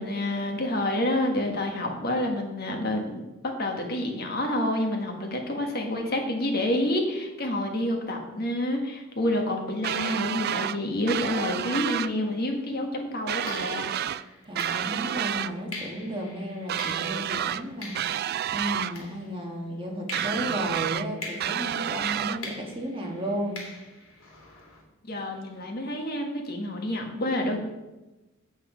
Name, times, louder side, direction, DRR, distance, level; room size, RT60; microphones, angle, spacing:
voice 1, 0.0-3.3 3.6-13.9 25.1-27.6, left 1 dB, 50° left, 2 dB, 1.5 m, -28 dB
sound 1, 9.8-10.8 11.1-12.1 13.3-14.2 14.5-15.5 16.7-17.6 17.9-18.9 20.1-21.1 21.4-22.4, right 10 dB, 50° right, 0.3 m, -29 dB
sound 2, 12.3-12.5 13.5-19.6 20.1-24.8, left 3 dB, 75° left, 2.6 m, -44 dB
voice 2, 14.4-18.2 18.5-23.6, right 1 dB, 25° right, 0 dB, 1.6 m, -33 dB
8.2 x 8.2 x 5.0 m, 1.1 s
head